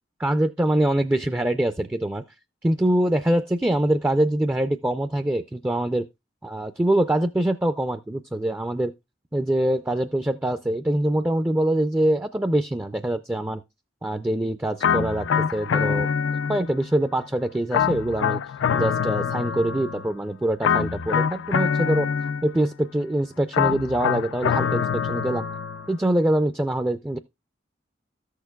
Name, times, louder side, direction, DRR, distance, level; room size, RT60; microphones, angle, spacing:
voice 1, 0.2-2.2 2.6-6.0 6.4-8.9 9.3-13.6 14.0-16.1 16.5-18.4 18.7-22.1 22.4-25.5 25.9-27.2, right 1 dB, 10° right, 0.4 m, -24 dB
sound 1, 14.8-16.9 17.7-20.1 20.6-22.7 23.5-25.9, left 7 dB, 85° left, 0.4 m, -25 dB
14.0 x 6.5 x 2.2 m
head